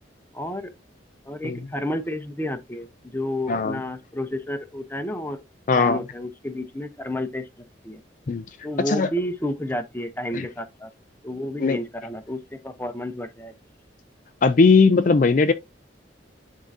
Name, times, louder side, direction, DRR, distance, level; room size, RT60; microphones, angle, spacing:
voice 1, 0.3-0.7 1.3-2.9 3.1-5.4 5.7-7.5 7.8-8.0 8.6-10.9 11.2-13.5, left 1 dB, 10° left, 0.8 m, -31 dB
voice 2, 3.5-3.8 5.7-6.0 8.3-8.4 8.9-9.1 10.3-10.5 11.6-11.8 14.4-15.5, left 4 dB, 45° left, 0.4 m, -18 dB
10.5 x 3.7 x 2.7 m
head